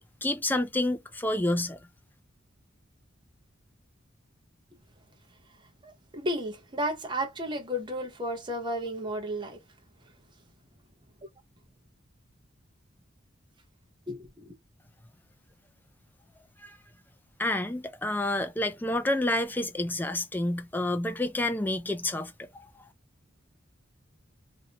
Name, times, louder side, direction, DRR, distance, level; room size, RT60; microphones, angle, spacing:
voice 1, 0.0-1.8 16.6-16.7 17.4-22.3, left 1 dB, 10° left, 0.4 m, -29 dB
voice 2, 5.8-9.6 14.1-14.5, equal, 25° right, 0.7 m, -33 dB
3.0 x 2.6 x 2.8 m
head